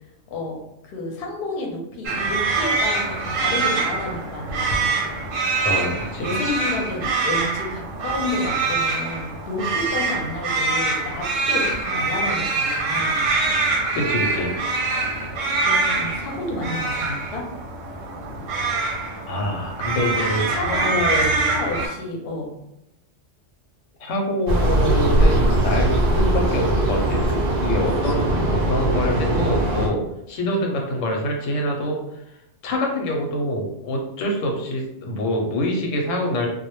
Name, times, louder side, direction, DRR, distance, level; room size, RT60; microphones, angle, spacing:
voice 1, 0.3-5.0 5.8-13.2 15.6-17.4 20.5-20.9 21.2-22.5 28.3-28.8 30.4-30.7, left 2 dB, 60° left, 0 dB, 0.7 m, -30 dB
sound 1, 2.0-21.9, right 3 dB, 90° right, 1.1 m, -24 dB
voice 2, 5.6-6.6 13.9-14.6 19.3-21.3 24.0-27.3 27.6-30.0 30.3-32.0 32.6-36.5, left 1 dB, 90° left, 1 dB, 1.0 m, -25 dB
sound 2, 24.5-29.9, right 1 dB, 50° right, 0.5 m, -20 dB
2.2 x 2.1 x 2.9 m, 0.84 s
omnidirectional pair, 1.3 m